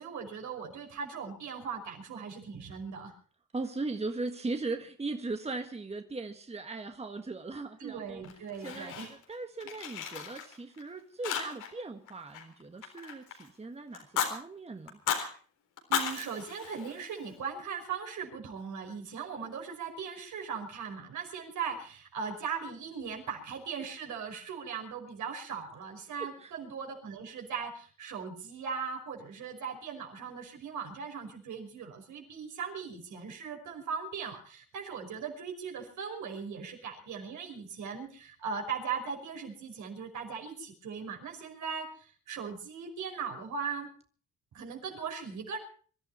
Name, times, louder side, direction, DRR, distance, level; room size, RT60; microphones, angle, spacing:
voice 1, 0.0-3.1 7.8-9.1 15.9-43.9 44.5-45.6, right 6 dB, 75° right, 2 dB, 5.6 m, -39 dB
voice 2, 3.5-8.2 8.6-15.0 26.2-26.5, right 3 dB, 20° right, 6 dB, 1.6 m, -38 dB
Fire, 8.2-9.3 9.6-10.8 11.2-11.8 12.1-13.5 13.9-14.3 14.9-15.3 15.8-17.3, left 8 dB, 90° left, 4.0 m, -35 dB
24.0 x 12.5 x 4.4 m, 0.43 s
cardioid pair, 90°, 30 cm